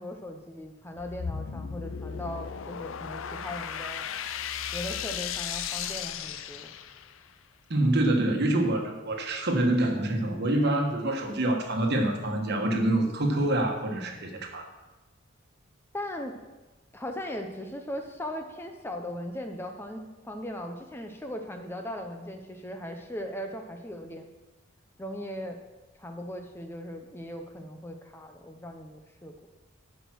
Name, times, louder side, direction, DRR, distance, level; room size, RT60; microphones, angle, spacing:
voice 1, 0.0-4.1 4.7-6.7 15.9-16.3 16.9-24.3 25.0-25.6 26.0-29.3, left 1 dB, 10° left, 4 dB, 0.6 m, -38 dB
sound 1, 1.0-7.3, left 8 dB, 70° left, 0.5 m, -35 dB
voice 2, 7.7-14.7, right 1 dB, 55° right, 2 dB, 1.4 m, -26 dB
10.5 x 5.1 x 6.2 m, 1.2 s
head